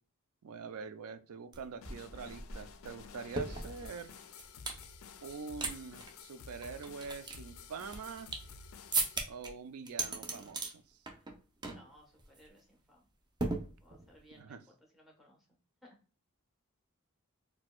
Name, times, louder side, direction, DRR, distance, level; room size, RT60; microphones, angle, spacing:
voice 1, 0.4-4.2 5.2-8.3 9.3-11.0 14.3-14.6, right 5 dB, 85° right, 0.4 m, -45 dB
sound 1, 1.5-1.6 1.8-4.8 5.3-5.7 6.0-6.1 6.6-8.5 8.9-9.5 9.9-10.7 11.1-11.4 11.6-11.9 12.2-12.4 13.4-14.2, right 3 dB, 20° right, 0.5 m, -37 dB
sound 2, 1.8-9.2, left 6 dB, 65° left, 0.4 m, -52 dB
voice 2, 11.6-13.1 13.8-15.4 15.8-16.0, equal, ahead, 1.0 m, -61 dB
4.2 x 2.2 x 2.2 m
head